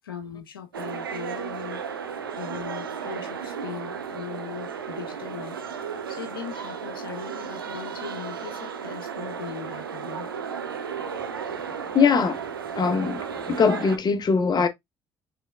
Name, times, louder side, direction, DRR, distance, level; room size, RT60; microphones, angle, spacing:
voice 1, 0.0-1.8 2.3-5.6 6.1-10.3, left 8 dB, 85° left, 0.7 m, -39 dB
sound 1, 0.7-14.0, right 7 dB, 90° right, 0.6 m, -34 dB
voice 2, 11.9-12.4 12.8-13.2 13.5-14.7, left 5 dB, 35° left, 0.8 m, -21 dB
6.0 x 3.4 x 2.2 m
figure-of-eight pair, 55°, 12 cm